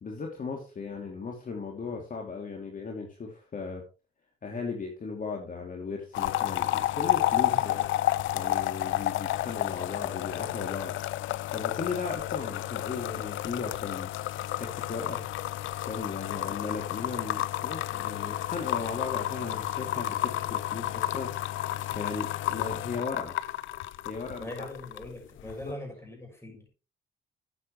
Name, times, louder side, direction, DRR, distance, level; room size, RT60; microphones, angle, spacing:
voice 1, 0.0-3.8 4.4-7.9 8.3-11.0 11.5-15.2 15.9-21.3 21.9-23.4 24.0-24.7 25.4-25.8, left 4 dB, 45° left, 1 dB, 2.8 m, -37 dB
sound 1, 6.1-25.1 25.4-25.7, left 14 dB, 75° left, 0.5 m, -31 dB
voice 2, 24.4-26.7, left 1 dB, 10° left, 2 dB, 6.4 m, -41 dB
12.5 x 8.2 x 3.2 m, 0.31 s
cardioid pair, 90°, 20 cm